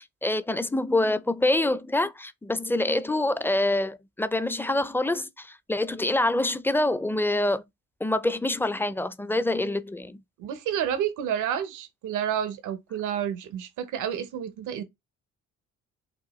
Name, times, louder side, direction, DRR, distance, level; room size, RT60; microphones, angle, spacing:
voice 1, 0.0-7.6 8.0-10.2, left 2 dB, 5° left, 0.4 m, -26 dB
voice 2, 10.4-14.8, right 9 dB, 90° right, 0.9 m, -30 dB
5.3 x 2.3 x 3.1 m
cardioid pair, 90°, 30 cm